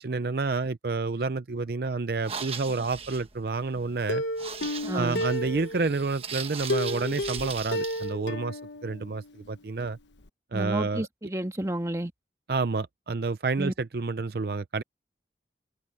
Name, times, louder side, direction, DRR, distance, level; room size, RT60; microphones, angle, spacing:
voice 1, 0.0-4.2 4.9-10.0 10.5-11.1 12.5-14.8, right 4 dB, 55° right, 0.5 m, -29 dB
sound 1, 2.1-8.1, right 6 dB, 30° right, 1.3 m, -39 dB
Plucked string instrument, 4.1-6.1 6.7-9.5 9.8-9.9 10.3-10.4, left 1 dB, 80° left, 1.2 m, -32 dB
voice 2, 4.9-5.2 10.5-12.1 13.6-13.7, right 1 dB, 15° right, 1.5 m, -31 dB
head